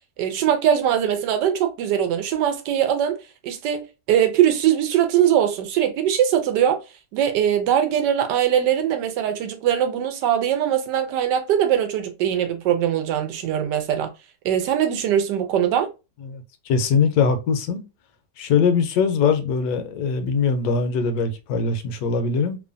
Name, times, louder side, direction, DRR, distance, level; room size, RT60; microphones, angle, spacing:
voice 1, 0.2-3.2 3.4-6.8 7.1-14.1 14.4-15.9, right 10 dB, 85° right, 1.2 m, -21 dB
voice 2, 16.2-17.8 18.4-22.6, left 5 dB, 70° left, 1.0 m, -22 dB
3.0 x 2.2 x 2.4 m
omnidirectional pair, 1.8 m